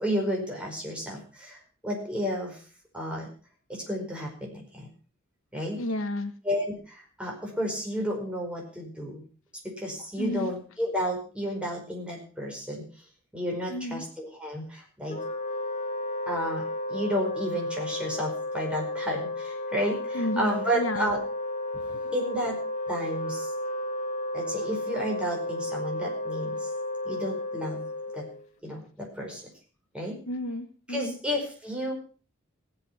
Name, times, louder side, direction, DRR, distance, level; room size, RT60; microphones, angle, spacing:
voice 1, 0.0-1.6 1.8-2.6 2.9-3.3 3.7-4.9 5.5-5.8 6.4-9.2 9.6-12.9 13.3-15.2 16.3-21.2 21.9-22.6 22.9-23.5 24.3-26.7 27.0-27.9 28.1-28.3 28.6-29.5 29.9-30.2 30.9-31.9, equal, 5° right, -1 dB, 5.0 m, -32 dB
voice 2, 5.7-6.3 10.2-10.5 13.7-14.1 20.1-21.1 22.0-22.1 30.3-31.2, left 1 dB, 75° left, 9 dB, 1.3 m, -32 dB
Wind instrument woodwind instrument, 15.1-28.5, left 1 dB, 35° left, 2.0 m, -33 dB
18.0 x 8.1 x 5.9 m, 0.38 s
head